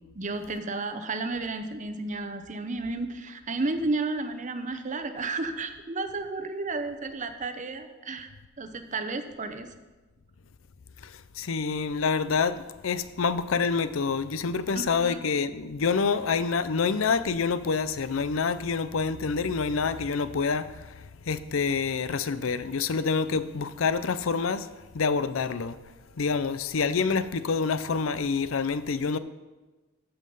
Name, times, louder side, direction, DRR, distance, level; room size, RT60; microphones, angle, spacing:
voice 1, 0.1-8.3 8.6-9.7 14.7-15.2, right 3 dB, 35° right, 0.8 m, -32 dB
voice 2, 11.0-24.7 24.9-25.8 26.2-29.2, left 5 dB, 70° left, 0.6 m, -27 dB
13.5 x 5.6 x 5.4 m
head